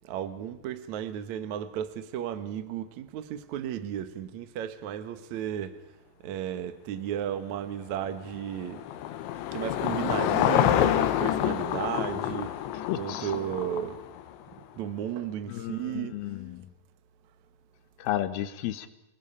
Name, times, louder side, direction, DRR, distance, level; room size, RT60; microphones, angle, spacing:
voice 1, 0.0-5.8 6.2-8.8 9.5-12.6 13.0-14.0 14.8-16.2, right 10 dB, 70° right, 1.7 m, -34 dB
Car passing by / Engine, 8.0-14.4, left 11 dB, 90° left, 3.4 m, -27 dB
voice 2, 12.7-13.3 15.5-16.6 18.0-18.9, left 12 dB, 70° left, 2.6 m, -33 dB
28.0 x 20.0 x 5.6 m
omnidirectional pair, 5.2 m